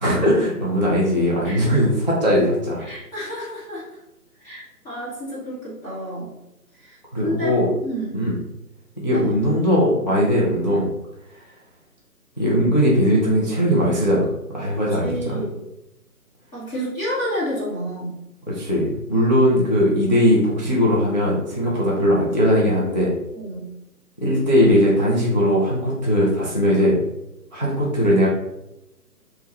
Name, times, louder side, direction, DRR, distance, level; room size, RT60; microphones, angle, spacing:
voice 1, 0.0-2.9 7.1-7.7 8.1-8.4 9.0-10.9 12.4-14.3 14.5-15.4 18.5-23.1 24.2-27.0 27.5-28.3, equal, 30° left, -5 dB, 0.4 m, -19 dB
voice 2, 1.4-1.8 2.8-4.0 4.4-6.3 6.8-7.5 7.8-8.2 9.1-9.3 14.7-15.5 16.5-18.2 19.1-19.3 23.3-23.6, equal, 10° left, -12 dB, 1.0 m, -30 dB
3.5 x 2.2 x 3.9 m, 0.90 s
figure-of-eight pair, 155°, 47 cm